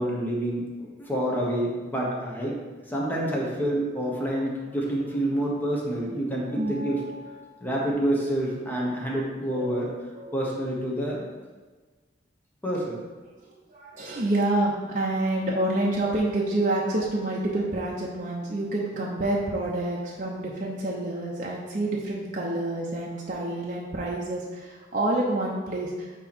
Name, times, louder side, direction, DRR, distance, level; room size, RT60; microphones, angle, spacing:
voice 1, 0.0-2.6 2.9-7.0 7.6-9.9 10.3-11.3 12.6-13.0, right 1 dB, 10° left, -4 dB, 1.3 m, -28 dB
voice 2, 6.0-7.6 9.5-10.5 13.7-26.1, right 1 dB, 45° right, -4 dB, 0.8 m, -28 dB
9.2 x 3.1 x 4.3 m, 1.3 s
head